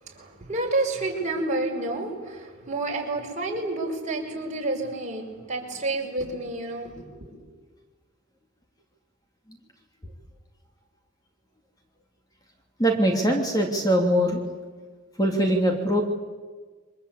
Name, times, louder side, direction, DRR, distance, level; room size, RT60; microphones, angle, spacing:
voice 1, 0.0-7.4, right 2 dB, 35° right, -1 dB, 5.8 m, -30 dB
voice 2, 12.8-14.4 15.2-16.0, equal, 20° left, 2 dB, 3.0 m, -22 dB
28.0 x 24.5 x 8.5 m, 1.4 s
head